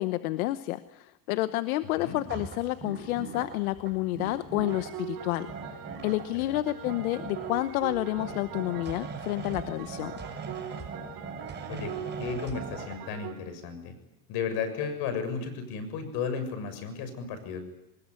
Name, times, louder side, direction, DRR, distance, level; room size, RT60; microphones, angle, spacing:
voice 1, 0.0-5.5 6.0-10.1, left 17 dB, 85° left, 13 dB, 1.1 m, -30 dB
sound 1, 2.2-13.0, right 5 dB, 25° right, 6.1 m, -41 dB
sound 2, 4.6-13.3, right 9 dB, 60° right, 4.9 m, -42 dB
voice 2, 11.7-13.9 14.3-17.6, left 6 dB, 60° left, 10 dB, 6.9 m, -34 dB
24.0 x 20.5 x 9.7 m, 0.93 s
supercardioid pair, 110°, 42 cm